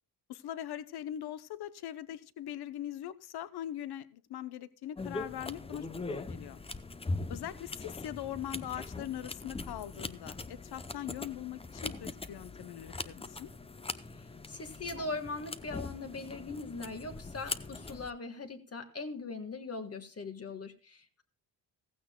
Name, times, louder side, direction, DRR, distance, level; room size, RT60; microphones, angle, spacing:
voice 1, 0.3-6.6 7.3-13.5, left 11 dB, 65° left, 15 dB, 0.8 m, -41 dB
sound 1, 5.0-18.1, left 3 dB, 15° left, 0.6 m, -41 dB
voice 2, 14.1-21.2, left 3 dB, 35° left, 7 dB, 1.6 m, -41 dB
15.0 x 15.0 x 2.2 m, 0.38 s
cardioid pair, 90°, 41 cm